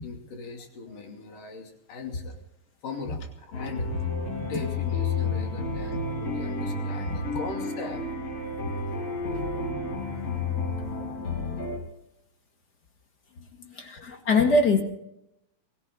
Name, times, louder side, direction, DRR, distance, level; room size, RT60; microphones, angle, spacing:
voice 1, 0.0-2.4 2.8-3.9 4.3-8.0 9.3-9.4 13.3-14.3, left 4 dB, 90° left, 3 dB, 4.3 m, -40 dB
sound 1, 3.5-11.8, left 3 dB, 55° left, 5.4 m, -31 dB
voice 2, 13.8-14.8, left 3 dB, 35° left, 4 dB, 2.1 m, -22 dB
23.5 x 16.0 x 3.9 m, 0.82 s
omnidirectional pair, 3.6 m